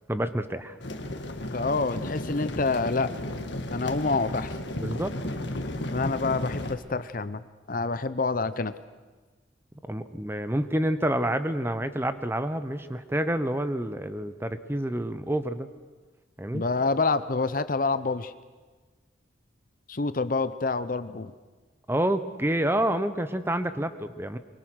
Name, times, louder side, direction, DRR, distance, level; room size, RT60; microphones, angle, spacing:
voice 1, 0.1-0.8 4.8-5.2 9.9-15.7 16.4-16.6 21.9-24.4, right 1 dB, 10° right, 11 dB, 0.8 m, -28 dB
sound 1, 0.8-6.8, left 1 dB, 65° left, 1.7 m, -34 dB
voice 2, 1.5-3.1 3.7-4.5 5.9-7.4 7.7-8.7 16.5-18.3 19.9-21.3, left 3 dB, 45° left, 13 dB, 0.7 m, -27 dB
24.0 x 23.5 x 6.4 m, 1.3 s
head